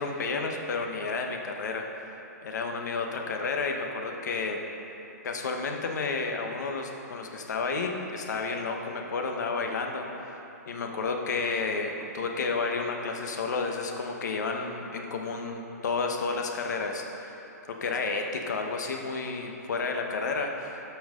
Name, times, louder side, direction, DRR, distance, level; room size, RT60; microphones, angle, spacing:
voice 1, 0.0-2.0 2.4-4.6 5.2-10.3 10.7-17.3 17.7-20.7, left 4 dB, 75° left, 3 dB, 1.1 m, -31 dB
13.0 x 5.7 x 3.8 m, 3.0 s
hypercardioid pair, 145°, 10 cm